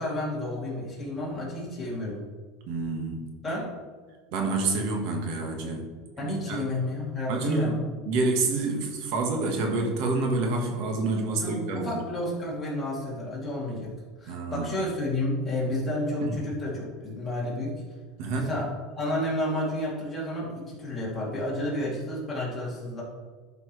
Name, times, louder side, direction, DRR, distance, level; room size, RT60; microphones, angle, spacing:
voice 1, 0.0-2.2 3.4-3.7 6.2-7.8 11.4-13.9 14.2-17.8 18.3-18.7 19.0-23.0, left 1 dB, 15° left, -5 dB, 2.8 m, -31 dB
voice 2, 2.7-3.3 4.3-5.8 6.2-6.6 7.3-7.8 8.0-12.0 14.3-14.7 16.2-16.4 18.2-18.5, right 3 dB, 60° right, 2 dB, 1.5 m, -28 dB
12.0 x 6.0 x 3.3 m, 1.4 s
supercardioid pair, 160°, 0 cm